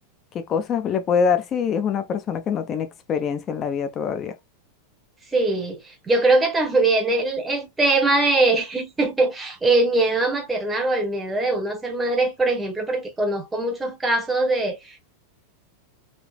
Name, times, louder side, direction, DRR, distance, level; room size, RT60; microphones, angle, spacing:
voice 1, 0.3-4.3, left 6 dB, 30° left, 0.7 m, -24 dB
voice 2, 5.3-15.0, right 2 dB, 10° right, 1.0 m, -22 dB
3.5 x 2.8 x 2.3 m
figure-of-eight pair, 90°, 0 cm